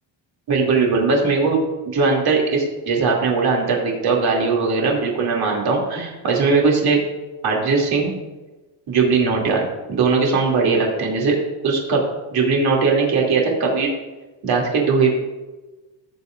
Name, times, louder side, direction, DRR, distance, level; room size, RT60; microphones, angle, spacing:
voice 1, 0.5-1.6 1.9-7.0 7.4-8.1 8.9-11.4 11.6-12.0 12.3-13.9 14.4-15.2, right 4 dB, 55° right, -1 dB, 2.7 m, -19 dB
17.0 x 6.6 x 2.5 m, 1.1 s
cardioid pair, 135°, 45 cm